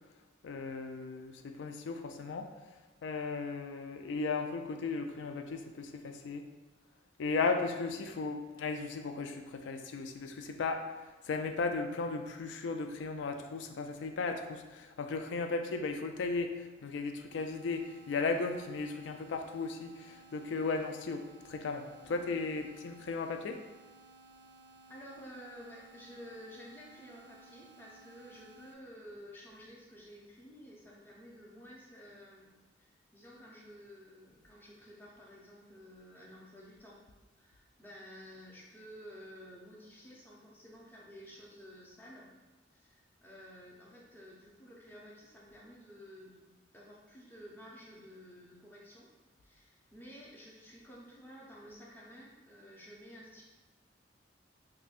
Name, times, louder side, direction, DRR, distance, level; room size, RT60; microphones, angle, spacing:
voice 1, 0.4-2.8 3.0-6.5 7.2-23.6, left 4 dB, 75° left, 6 dB, 0.3 m, -36 dB
sound 1, 17.3-28.7, right 2 dB, 65° right, 0.4 m, -58 dB
voice 2, 24.9-37.0 37.4-42.3 42.7-46.4 46.7-49.1 49.4-53.4, equal, 10° left, -4 dB, 0.5 m, -52 dB
5.0 x 2.2 x 2.4 m, 1.2 s
head